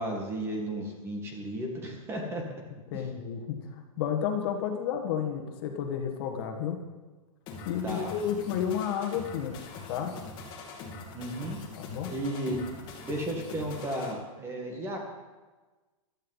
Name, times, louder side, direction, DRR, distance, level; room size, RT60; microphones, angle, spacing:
voice 1, 0.0-2.4 2.9-3.1 7.8-8.1 11.1-11.6 12.1-12.6 13.0-15.0, right 1 dB, 15° right, 2 dB, 1.6 m, -34 dB
voice 2, 2.9-6.8 7.7-9.6 9.9-10.1 11.8-12.1, left 8 dB, 40° left, 4 dB, 1.7 m, -31 dB
sound 1, 7.5-14.1, left 4 dB, 25° left, 2.1 m, -43 dB
15.5 x 12.0 x 4.1 m, 1.3 s
hypercardioid pair, 160°, 18 cm